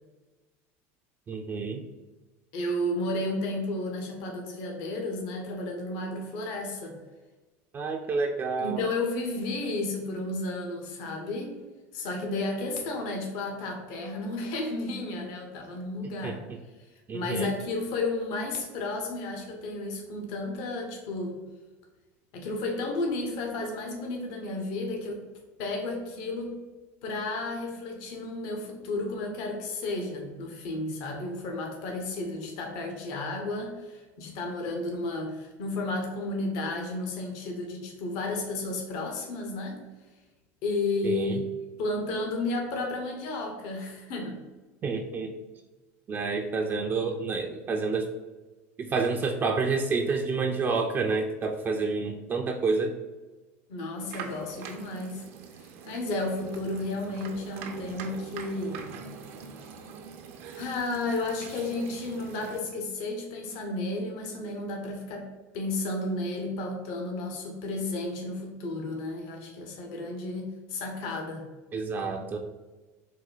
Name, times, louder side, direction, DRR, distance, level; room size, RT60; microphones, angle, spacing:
voice 1, 1.3-1.8 7.7-8.8 16.2-16.3 17.1-17.5 41.0-41.4 44.8-45.3 46.1-48.1 48.8-52.9 71.7-72.4, right 4 dB, 30° right, 2 dB, 0.4 m, -29 dB
voice 2, 2.5-7.0 8.6-11.6 11.9-16.4 17.1-21.4 22.3-25.2 25.6-26.5 27.0-39.8 40.6-41.4 41.8-44.4 53.7-55.2 55.6-58.9 60.5-65.3 65.5-71.5, left 2 dB, 65° left, 2 dB, 0.9 m, -32 dB
sound 1, 54.0-62.6, right 6 dB, 75° right, 0.6 m, -43 dB
4.2 x 2.2 x 4.0 m, 1.2 s
supercardioid pair, 110°, 7 cm